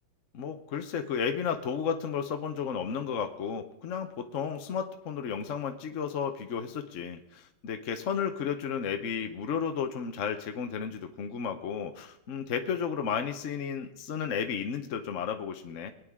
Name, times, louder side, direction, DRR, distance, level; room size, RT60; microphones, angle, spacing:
voice 1, 0.3-15.9, left 7 dB, 55° left, 6 dB, 0.9 m, -33 dB
22.0 x 9.6 x 3.6 m, 0.86 s
omnidirectional pair, 2.2 m